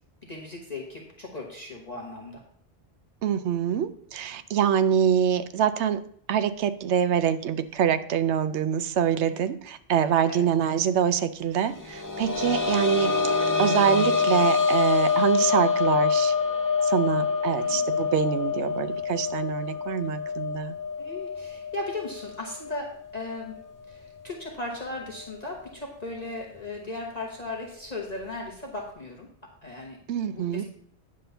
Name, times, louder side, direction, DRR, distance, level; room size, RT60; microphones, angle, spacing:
voice 1, 0.2-2.4 9.2-9.5 10.3-10.5 12.8-13.1 17.6-17.8 21.0-23.6 23.9-29.3 29.6-30.0 30.3-30.6, left 2 dB, 35° left, -2 dB, 1.3 m, -37 dB
voice 2, 3.2-6.0 6.3-13.2 13.6-16.3 16.8-20.7 30.1-30.6, right 9 dB, 75° right, 12 dB, 0.9 m, -25 dB
sound 1, 11.7-23.2 23.5-23.6 25.2-25.3, left 5 dB, 20° left, 0.6 m, -26 dB
9.6 x 3.8 x 6.7 m, 0.64 s
omnidirectional pair, 1.2 m